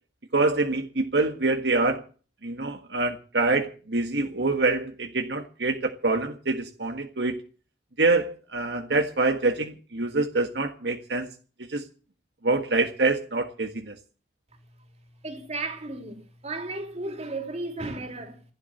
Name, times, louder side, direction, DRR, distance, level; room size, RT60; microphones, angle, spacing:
voice 1, 0.3-2.0 2.4-7.4 8.0-11.3 11.7-11.8 12.4-13.9, right 3 dB, 75° right, 1.6 m, -25 dB
voice 2, 15.2-18.4, right 2 dB, 40° right, 3.5 m, -34 dB
16.0 x 11.0 x 7.7 m
head